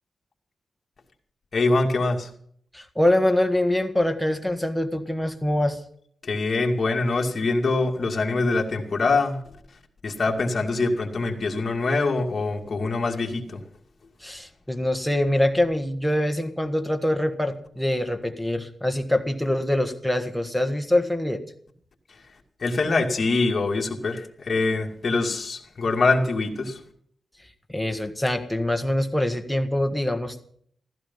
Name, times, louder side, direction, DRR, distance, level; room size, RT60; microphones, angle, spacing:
voice 1, 1.5-2.3 6.2-9.4 10.0-13.6 22.6-26.8, left 3 dB, 40° left, 1 dB, 2.4 m, -24 dB
voice 2, 2.7-5.8 14.2-21.4 27.7-30.4, left 1 dB, ahead, 5 dB, 1.5 m, -24 dB
15.5 x 14.0 x 5.6 m, 0.62 s
wide cardioid pair, 145°, 0 cm